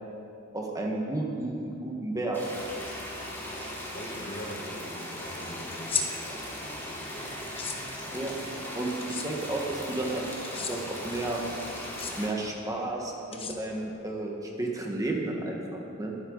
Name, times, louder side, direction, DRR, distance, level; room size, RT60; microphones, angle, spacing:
voice 1, 0.5-2.4 8.1-8.3 8.7-10.4 10.7-11.4 12.2-16.1, right 2 dB, 15° right, -1 dB, 1.5 m, -32 dB
sound 1, 2.3-12.3, equal, 10° left, 2.7 m, -38 dB
voice 2, 3.9-7.3 7.6-8.3 8.7-8.9, left 1 dB, 55° left, 2 dB, 1.5 m, -44 dB
sound 2, 5.7-6.1 7.4-7.8 9.0-9.3 10.4-10.7 11.8-12.1 13.3-13.9, left 6 dB, 30° left, 1.0 m, -33 dB
21.0 x 9.9 x 4.0 m, 2.7 s
head